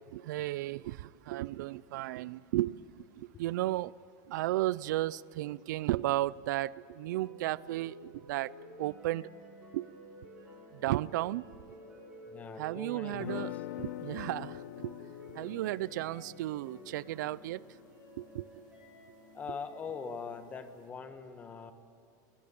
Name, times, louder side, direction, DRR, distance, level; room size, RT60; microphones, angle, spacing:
voice 1, 0.1-2.8 3.2-3.9 4.3-8.5 8.8-9.3 9.7-9.9 10.8-11.4 12.6-15.0 15.3-17.6 18.2-18.5, right 16 dB, 75° right, 21 dB, 0.5 m, -34 dB
sound 1, 7.1-20.4, equal, 10° right, 4.9 m, -52 dB
voice 2, 12.3-13.5 19.3-21.7, left 5 dB, 15° left, 9 dB, 1.2 m, -42 dB
sound 2, 13.1-19.1, left 16 dB, 90° left, 0.5 m, -45 dB
20.5 x 20.5 x 8.7 m, 2.8 s
supercardioid pair, 180°, 10 cm